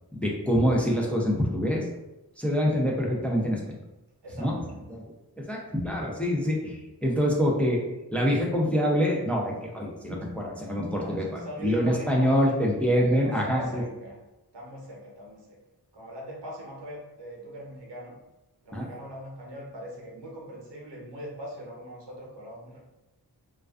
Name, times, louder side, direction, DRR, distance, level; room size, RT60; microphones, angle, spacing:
voice 1, 0.1-1.8 2.4-3.6 4.4-4.6 4.9-5.0 5.4-7.8 8.1-13.8 18.7-18.9, equal, 5° left, -2 dB, 0.4 m, -25 dB
voice 2, 4.2-4.9 10.9-12.7 13.1-14.2 14.5-15.6 15.9-18.2 18.6-22.8, equal, 85° right, -2 dB, 0.8 m, -41 dB
2.3 x 2.2 x 2.3 m, 0.98 s
wide cardioid pair, 80°, 41 cm